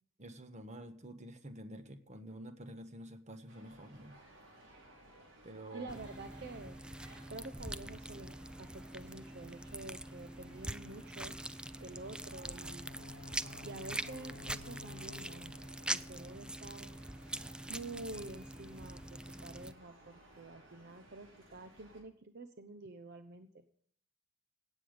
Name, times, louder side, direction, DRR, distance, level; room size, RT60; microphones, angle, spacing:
voice 1, 0.2-4.2 5.4-5.9, right 1 dB, 35° right, 9 dB, 1.4 m, -49 dB
sound 1, 3.5-22.0, right 1 dB, 75° right, 4.9 m, -59 dB
voice 2, 5.7-6.8 7.3-11.3 11.8-12.9 13.6-16.9 17.7-23.6, right 2 dB, 55° right, 9 dB, 0.9 m, -48 dB
sound 2, 5.9-19.7, right 1 dB, 5° right, 0.4 m, -44 dB
sound 3, 12.8-16.8, left 4 dB, 90° left, 0.7 m, -54 dB
17.0 x 8.5 x 5.1 m, 0.62 s
head